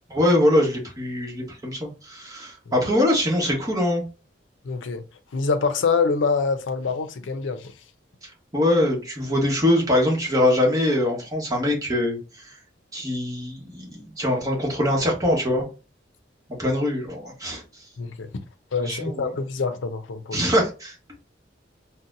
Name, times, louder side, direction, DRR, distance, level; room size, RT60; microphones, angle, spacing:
voice 1, 0.1-4.0 8.2-12.5 12.9-15.7 16.6-17.6 18.8-19.3 20.3-20.9, left 1 dB, 20° right, 1.1 m, -23 dB
voice 2, 4.6-5.0 5.3-7.7 18.0-18.3 18.7-20.4, left 4 dB, 90° left, 0.5 m, -25 dB
3.9 x 2.1 x 2.5 m
head